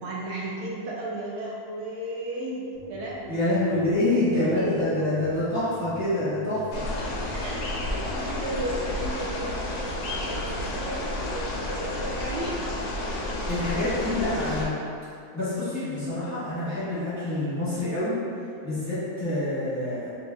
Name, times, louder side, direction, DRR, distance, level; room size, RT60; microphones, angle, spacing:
voice 1, 0.0-3.4 4.1-4.9 7.3-7.7 8.1-12.6 13.0-13.1, right 1 dB, 80° right, -4 dB, 0.6 m, -34 dB
sound 1, 2.7-8.4, left 1 dB, 45° left, 0.7 m, -47 dB
voice 2, 3.3-6.9 13.5-14.8 15.3-18.2 18.6-20.2, left 1 dB, 10° left, -13 dB, 1.2 m, -26 dB
sound 2, 6.7-14.6, left 1 dB, 75° left, 1.1 m, -31 dB
3.0 x 2.8 x 3.3 m, 2.4 s
omnidirectional pair, 1.7 m